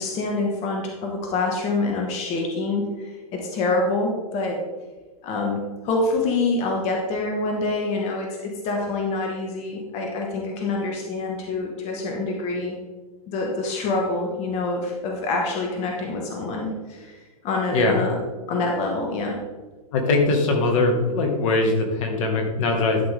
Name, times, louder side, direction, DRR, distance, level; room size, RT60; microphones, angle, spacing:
voice 1, 0.0-4.6 5.2-12.8 13.3-18.2 18.5-19.4, left 3 dB, 35° left, 0 dB, 1.7 m, -26 dB
voice 2, 19.9-23.0, left 3 dB, 55° left, 2 dB, 1.9 m, -21 dB
12.0 x 6.0 x 3.6 m, 1.3 s
hypercardioid pair, 115°, 20 cm